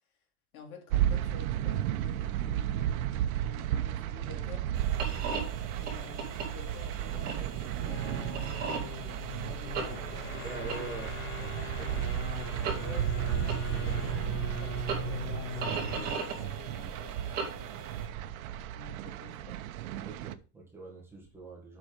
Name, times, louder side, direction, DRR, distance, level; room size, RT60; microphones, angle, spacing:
voice 1, 0.5-4.7 5.8-10.9 11.5-11.7 12.7-17.9 18.7-19.6, left 5 dB, 80° left, 3.4 m, -50 dB
sound 1, 0.9-20.3, right 11 dB, 75° right, 0.9 m, -34 dB
sound 2, 4.7-18.1, right 5 dB, 20° right, 2.5 m, -39 dB
sound 3, 7.7-16.2, left 2 dB, 30° left, 2.0 m, -40 dB
voice 2, 10.4-12.0 20.0-21.8, right 3 dB, 5° right, 1.6 m, -44 dB
7.8 x 5.5 x 5.2 m
supercardioid pair, 175°, 43 cm